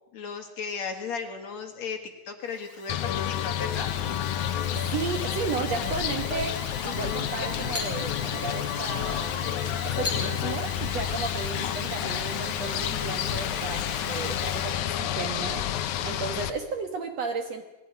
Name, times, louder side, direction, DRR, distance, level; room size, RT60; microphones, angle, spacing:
voice 1, 0.1-2.0 2.3-3.9, left 5 dB, 55° left, 5 dB, 2.8 m, -35 dB
Alarm, 2.5-14.8, left 3 dB, 30° left, 1.4 m, -40 dB
sound 1, 2.9-16.5, left 11 dB, 70° left, 2.1 m, -30 dB
sound 2, 4.6-12.3, equal, 5° left, 3.2 m, -44 dB
voice 2, 4.9-6.6 6.8-15.6 16.0-17.6, right 5 dB, 60° right, 6 dB, 2.1 m, -34 dB
21.0 x 16.0 x 9.6 m, 1.0 s
omnidirectional pair, 4.2 m